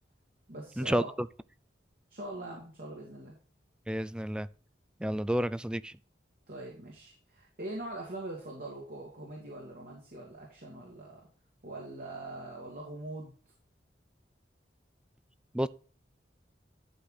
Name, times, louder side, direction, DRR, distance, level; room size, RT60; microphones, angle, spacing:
voice 1, 0.5-1.1 2.1-3.4 6.5-11.2 11.6-13.3, right 2 dB, 55° right, 2.3 m, -42 dB
voice 2, 3.9-4.5 5.0-5.9 15.5-15.7, equal, 5° right, 0.3 m, -30 dB
11.5 x 4.9 x 4.0 m
head